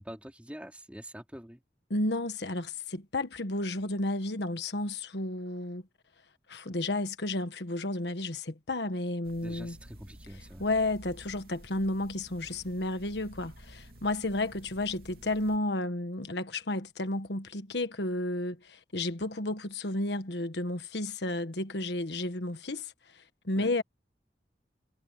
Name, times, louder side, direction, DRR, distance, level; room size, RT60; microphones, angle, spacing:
voice 1, 0.0-1.6 9.4-10.6 23.6-23.7, equal, 5° right, 3.2 m, -45 dB
voice 2, 1.9-5.8 6.5-9.8 10.3-23.8, left 2 dB, 75° left, 1.4 m, -32 dB
sound 1, 9.2-15.6, right 1 dB, 55° right, 3.0 m, -52 dB
head